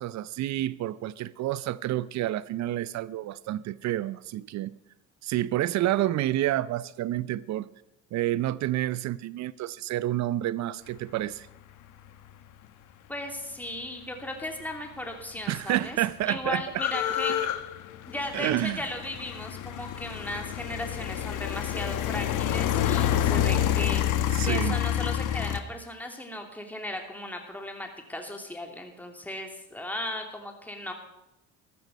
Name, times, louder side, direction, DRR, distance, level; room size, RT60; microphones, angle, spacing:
voice 1, 0.0-4.7 5.2-7.7 8.1-11.5 15.5-16.6 17.4-17.5 18.3-18.8 24.3-24.8, right 14 dB, 50° right, 0.7 m, -29 dB
voice 2, 13.1-16.0 16.3-17.5 18.1-24.0 24.4-30.9, left 1 dB, 5° left, 2.9 m, -36 dB
sound 1, 14.9-15.0 15.2-25.6, left 11 dB, 55° left, 1.3 m, -28 dB
14.0 x 13.5 x 5.4 m
hypercardioid pair, 75°, 37 cm